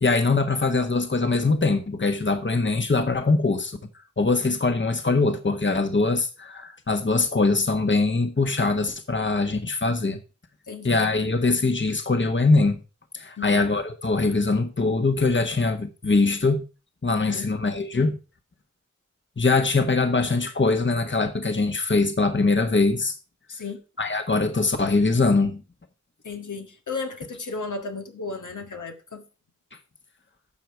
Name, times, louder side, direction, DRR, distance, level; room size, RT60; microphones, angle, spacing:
voice 1, 0.0-3.8 4.2-10.2 10.8-12.8 13.1-16.6 17.0-18.2 19.4-23.1 24.0-25.6, left 3 dB, 40° left, 1.5 m, -22 dB
voice 2, 10.7-11.2 13.4-13.7 17.2-17.5 23.5-23.8 26.2-29.2, left 4 dB, 80° left, 1.8 m, -34 dB
11.5 x 7.0 x 4.6 m
wide cardioid pair, 50°, 30 cm